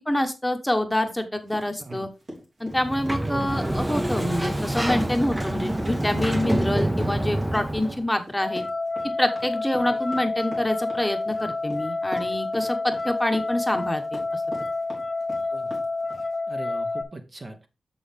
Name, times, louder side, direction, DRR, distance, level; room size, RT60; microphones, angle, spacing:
voice 1, 0.1-2.1 2.6-8.6 9.2-14.4, left 1 dB, 10° left, 6 dB, 1.1 m, -26 dB
sound 1, 1.5-16.4, equal, 50° right, 3.5 m, -42 dB
Sliding door, 2.7-8.0, right 1 dB, 15° right, 0.7 m, -27 dB
voice 2, 3.3-3.7 7.8-8.0 9.9-10.0 12.1-12.3 15.5-15.7 16.5-17.7, right 2 dB, 35° right, 6 dB, 1.1 m, -39 dB
sound 2, 8.4-17.0, left 3 dB, 35° left, 0.7 m, -29 dB
7.0 x 6.2 x 3.6 m, 0.27 s
cardioid pair, 85°, 0 cm